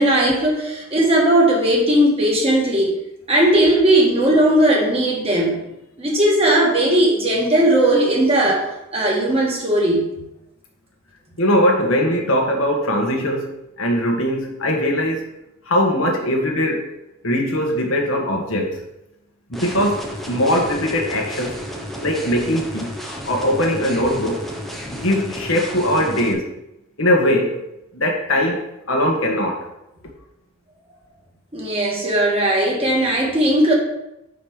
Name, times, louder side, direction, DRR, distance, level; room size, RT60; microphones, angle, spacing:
voice 1, 0.0-3.0 3.3-5.6 6.0-8.7 8.9-10.2 31.5-33.7, right 1 dB, 25° right, -2 dB, 1.8 m, -17 dB
voice 2, 11.4-13.5 13.8-15.2 15.6-16.9 17.2-18.8 19.5-21.6 22.0-22.9 23.2-24.4 24.9-26.5 27.0-27.6 27.9-29.7, equal, 70° left, 1 dB, 1.5 m, -20 dB
sound 1, 19.5-26.3, equal, ahead, 0.8 m, -32 dB
5.3 x 5.1 x 6.5 m, 0.88 s
head